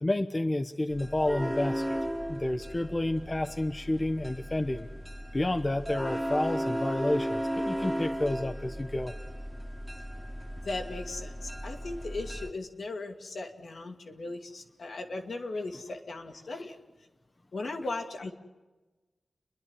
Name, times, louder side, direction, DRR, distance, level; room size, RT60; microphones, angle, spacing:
voice 1, 0.0-2.0 2.3-4.9 5.3-9.1, left 1 dB, 30° left, 6 dB, 1.1 m, -30 dB
sound 1, 0.9-12.5, equal, 10° right, 1.9 m, -35 dB
voice 2, 10.6-16.8 17.5-18.3, left 2 dB, 75° left, 3 dB, 2.0 m, -37 dB
29.5 x 10.5 x 9.7 m, 1.2 s
cardioid pair, 45°, 0 cm